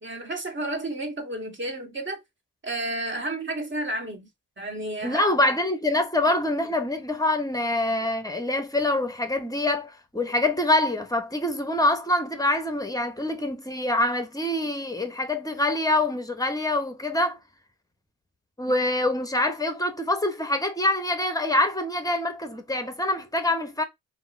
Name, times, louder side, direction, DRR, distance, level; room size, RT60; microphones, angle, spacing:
voice 1, 0.0-2.2 2.6-4.3 4.6-5.2, right 1 dB, 30° right, 1.5 m, -31 dB
voice 2, 5.0-17.4 18.6-23.8, left 1 dB, 10° left, 0.8 m, -25 dB
3.5 x 2.1 x 2.5 m
supercardioid pair, 50°, 40 cm